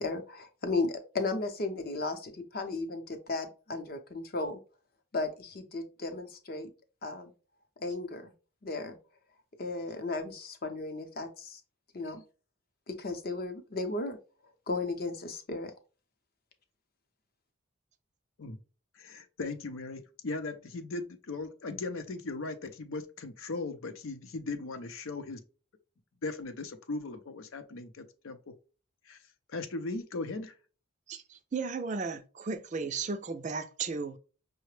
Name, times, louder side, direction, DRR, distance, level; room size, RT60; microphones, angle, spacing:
voice 1, 0.0-4.6 5.1-6.7 7.0-7.3 7.8-8.3 8.6-9.0 9.6-11.6 11.9-12.2 12.9-14.2 14.7-15.7, left 3 dB, 45° left, 0.6 m, -35 dB
voice 2, 19.0-25.4 26.2-28.4 29.1-29.2 29.5-30.5, left 3 dB, 85° left, 0.6 m, -38 dB
voice 3, 31.1-34.2, right 4 dB, 35° right, 0.4 m, -35 dB
5.6 x 2.1 x 3.1 m
head